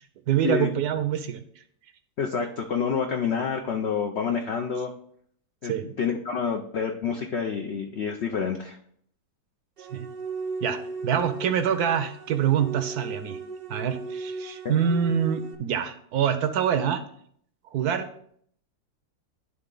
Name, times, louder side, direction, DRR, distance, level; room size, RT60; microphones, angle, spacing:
voice 1, 0.3-1.4 5.6-5.9 9.9-10.1 10.6-13.4 13.7-17.0 17.7-18.1, right 8 dB, 70° right, 9 dB, 1.0 m, -25 dB
voice 2, 2.2-4.9 5.6-8.8 14.6-14.8, left 6 dB, 75° left, 4 dB, 0.6 m, -28 dB
sound 1, 9.8-15.5, right 4 dB, 50° right, 0.6 m, -36 dB
11.0 x 3.7 x 3.8 m, 0.64 s
omnidirectional pair, 1.9 m